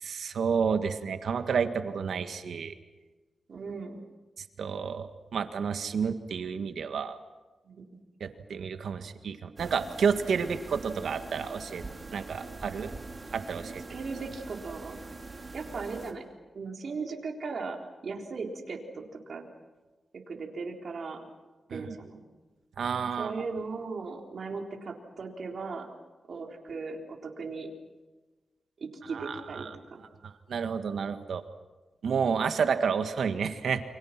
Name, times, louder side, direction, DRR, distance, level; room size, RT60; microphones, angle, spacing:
voice 1, 0.0-2.7 4.6-7.2 8.2-11.8 12.1-12.9 13.3-13.8 21.7-21.9 22.8-23.3 29.1-29.7 30.2-31.4 32.0-33.8, right 6 dB, 85° right, 9 dB, 1.8 m, -30 dB
voice 2, 3.5-4.0 7.6-7.9 13.6-15.0 15.5-16.2 16.5-19.5 20.3-21.2 21.7-22.2 23.2-25.9 26.3-27.7 28.8-30.0, right 4 dB, 65° right, 1 dB, 3.9 m, -38 dB
sound 1, 9.6-16.1, right 3 dB, 35° right, 3.0 m, -43 dB
29.0 x 25.5 x 6.0 m, 1.2 s
cardioid pair, 85°, 0 cm